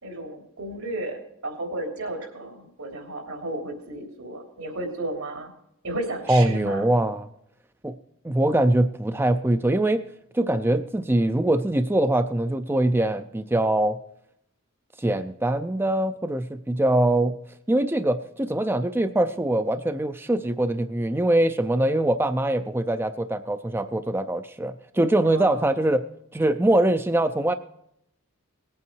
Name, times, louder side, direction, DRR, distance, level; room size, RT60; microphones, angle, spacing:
voice 1, 0.0-5.5 5.8-6.9 25.2-25.8, right 1 dB, 80° right, 2 dB, 3.4 m, -33 dB
voice 2, 6.3-7.3 7.8-7.9 8.2-10.0 10.3-14.0 15.0-17.3 17.7-26.0 26.3-27.5, right 1 dB, 10° right, 10 dB, 0.4 m, -23 dB
19.0 x 8.6 x 4.6 m, 0.78 s
head